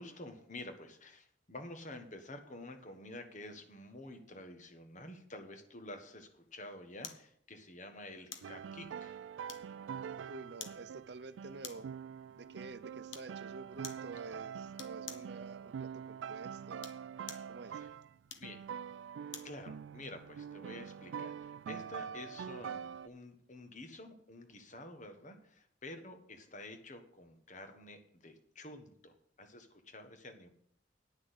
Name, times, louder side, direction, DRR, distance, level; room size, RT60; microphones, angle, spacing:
voice 1, 0.0-9.2 17.7-17.9 18.4-18.6 19.4-30.5, left 1 dB, 40° left, 7 dB, 1.4 m, -49 dB
sound 1, 7.0-7.3 8.3-8.6 9.5-9.9 10.6-10.8 11.6-12.0 13.1-13.3 13.8-14.1 14.8-15.3 16.7-17.5 18.3-19.6 20.0-20.1, left 7 dB, 90° left, 1.2 m, -48 dB
sound 2, 8.4-18.2 18.4-23.1, right 7 dB, 85° right, 0.3 m, -45 dB
voice 2, 10.3-11.9 12.3-16.9 17.5-17.8, right 3 dB, 65° right, 12 dB, 0.7 m, -49 dB
9.6 x 6.3 x 8.1 m, 0.64 s
head